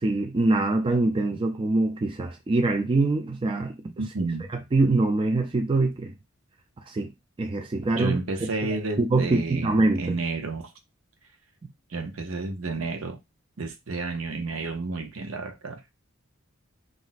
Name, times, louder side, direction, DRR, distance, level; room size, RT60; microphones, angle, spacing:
voice 1, 0.0-3.7 4.7-6.1 6.9-7.1 7.4-8.2 9.0-10.2, right 2 dB, 25° right, 0.4 m, -24 dB
voice 2, 4.0-4.5 8.0-10.7 11.9-13.2 13.6-15.8, right 3 dB, 70° right, 0.7 m, -31 dB
2.5 x 2.1 x 4.0 m
head